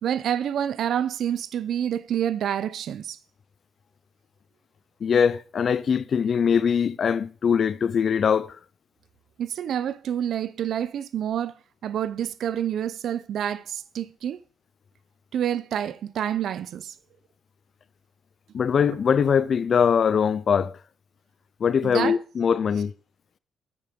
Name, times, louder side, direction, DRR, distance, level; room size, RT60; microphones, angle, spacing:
voice 1, 0.0-3.2 9.4-11.6 11.8-14.4 15.3-17.0 21.8-22.2, right 10 dB, 70° right, 0.7 m, -28 dB
voice 2, 5.0-8.6 18.5-20.7 21.6-22.9, left 7 dB, 50° left, 0.6 m, -22 dB
9.3 x 8.4 x 5.2 m
cardioid pair, 90°, 0 cm